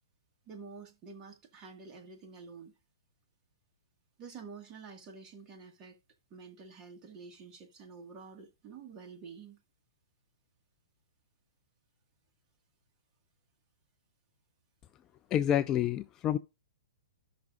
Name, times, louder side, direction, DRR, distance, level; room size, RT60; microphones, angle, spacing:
voice 1, 0.5-2.8 4.2-6.0 6.3-9.6, right 5 dB, 25° right, 1.8 m, -49 dB
voice 2, 15.3-16.4, left 10 dB, 20° left, 0.3 m, -28 dB
14.0 x 6.0 x 2.5 m
hypercardioid pair, 145°, 2 cm